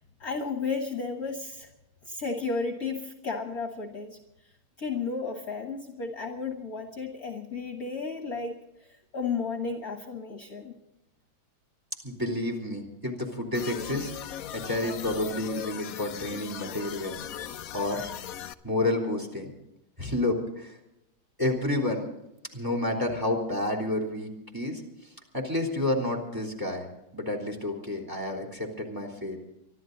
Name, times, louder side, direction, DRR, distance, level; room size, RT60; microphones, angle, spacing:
voice 1, 0.2-1.7 2.0-4.2 4.8-8.6 9.1-10.7, left 4 dB, 45° left, 4 dB, 1.8 m, -33 dB
voice 2, 12.0-14.1 14.5-18.1 18.6-19.5 20.0-20.8 21.4-22.0 22.5-24.8 25.3-26.9 27.1-29.4, left 1 dB, 10° right, 1 dB, 3.3 m, -30 dB
sound 1, 13.5-18.5, left 10 dB, 70° left, 0.8 m, -38 dB
24.5 x 13.0 x 3.9 m, 0.87 s
omnidirectional pair, 2.3 m